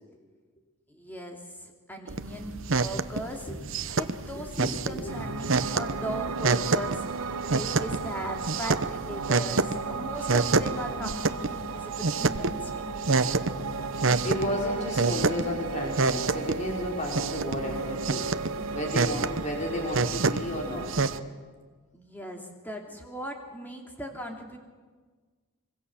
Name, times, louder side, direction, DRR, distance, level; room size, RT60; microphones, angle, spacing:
voice 1, 0.9-3.5 4.0-13.3 21.9-24.6, equal, 10° left, 2 dB, 2.7 m, -38 dB
sound 1, 2.1-21.2, right 4 dB, 60° right, 0.9 m, -29 dB
voice 2, 4.3-5.3 5.5-5.6 14.2-20.9, left 1 dB, 35° left, 0 dB, 4.3 m, -33 dB
Piano, 5.1-21.2, right 4 dB, 85° right, 1.3 m, -35 dB
25.5 x 23.5 x 7.2 m, 1.5 s
head